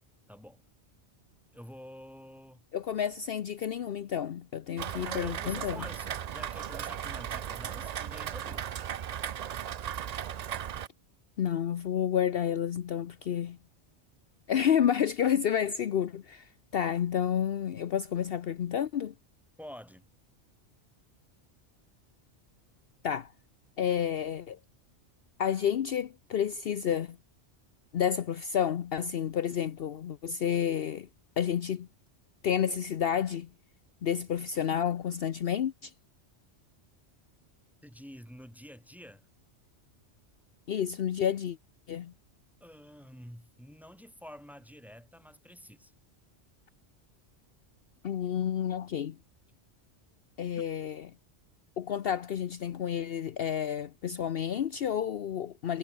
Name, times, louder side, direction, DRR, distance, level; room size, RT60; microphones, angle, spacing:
voice 1, 0.3-0.6 1.5-2.6 5.0-8.8 19.6-20.1 37.8-39.3 42.6-45.9, equal, ahead, 2.0 m, -48 dB
voice 2, 2.7-5.9 11.4-13.6 14.5-19.1 23.0-23.3 23.8-24.6 25.4-27.2 27.9-31.1 31.4-31.9 32.4-33.5 34.0-35.9 40.7-41.6 41.9-42.1 48.0-49.2 50.4-51.1 51.8-55.8, left 9 dB, 60° left, 0.9 m, -30 dB
Rain, 4.8-10.9, right 9 dB, 55° right, 0.4 m, -36 dB
omnidirectional pair, 1.2 m